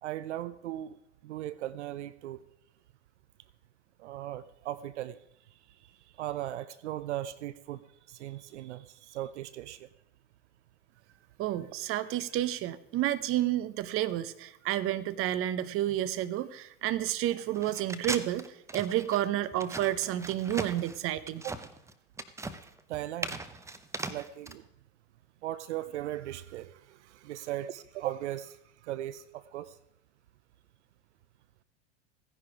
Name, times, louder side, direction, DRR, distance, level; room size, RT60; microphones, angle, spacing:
voice 1, 0.0-2.4 4.0-5.2 5.7-5.9 6.2-7.8 8.1-9.9 21.4-21.5 22.9-23.4 24.1-24.7 25.4-29.8, right 13 dB, 70° right, 16 dB, 0.7 m, -38 dB
voice 2, 11.4-21.4, right 13 dB, 35° right, 15 dB, 0.9 m, -30 dB
sound 1, 17.5-24.5, right 2 dB, 10° right, 0.8 m, -39 dB
16.0 x 10.5 x 4.8 m, 0.76 s
hypercardioid pair, 95°, 36 cm